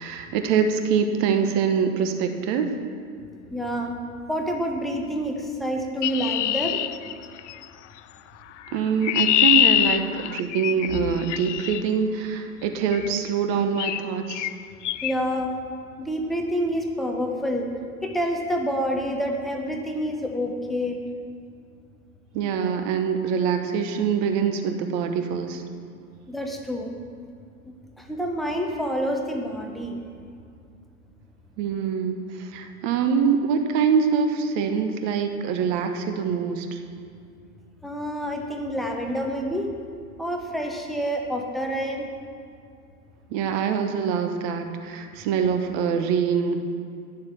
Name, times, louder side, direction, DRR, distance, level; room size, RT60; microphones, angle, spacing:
voice 1, 0.0-2.7 8.7-14.5 22.3-25.6 31.6-36.8 43.3-46.6, right 6 dB, 35° right, 6 dB, 1.0 m, -24 dB
voice 2, 3.5-4.0 4.3-6.8 15.0-15.6 16.0-17.7 18.0-21.0 26.3-26.9 27.6-30.0 37.8-39.7 40.2-42.1, equal, ahead, 1 dB, 0.8 m, -28 dB
Chirp tweet, 6.0-7.6 8.7-11.8 12.9-13.2 13.8-14.0 14.3-14.5 14.8-15.1, left 12 dB, 55° left, 0.5 m, -24 dB
10.5 x 7.2 x 6.3 m, 2.4 s
figure-of-eight pair, 105°, 45 cm